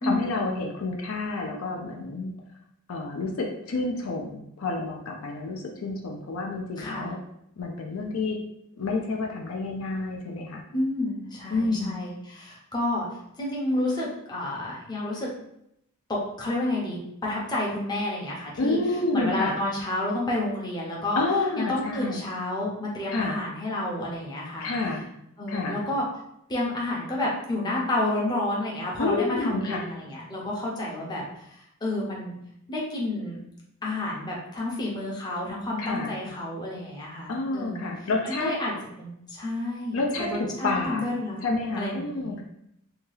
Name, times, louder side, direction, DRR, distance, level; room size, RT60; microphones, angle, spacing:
voice 1, 0.0-2.3 2.9-7.2 7.6-8.4 8.8-10.6 11.5-12.0 18.6-19.6 21.2-22.2 23.1-23.4 24.6-25.1 25.5-25.8 29.0-29.8 35.8-36.1 37.3-38.5 39.9-41.0 41.4-42.4, left 3 dB, 65° left, 1 dB, 0.5 m, -29 dB
voice 2, 6.8-7.1 10.7-13.1 13.4-15.3 16.1-18.8 19.1-21.2 21.6-24.7 25.4-26.0 26.5-32.3 32.7-33.4 33.8-37.9 38.2-38.7 39.0-41.4 41.8-42.4, left 1 dB, 20° left, -4 dB, 0.6 m, -30 dB
2.8 x 2.3 x 3.1 m, 0.78 s
head